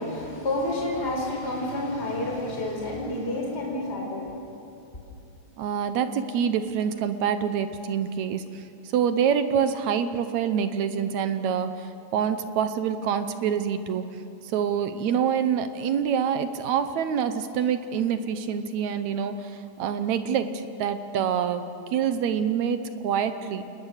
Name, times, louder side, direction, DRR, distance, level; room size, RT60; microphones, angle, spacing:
voice 1, 0.0-4.3, left 1 dB, 20° left, -2 dB, 4.6 m, -29 dB
voice 2, 5.6-8.6 8.9-14.1 14.4-23.6, right 8 dB, 70° right, 10 dB, 2.2 m, -26 dB
28.0 x 20.5 x 6.6 m, 3.0 s
omnidirectional pair, 3.5 m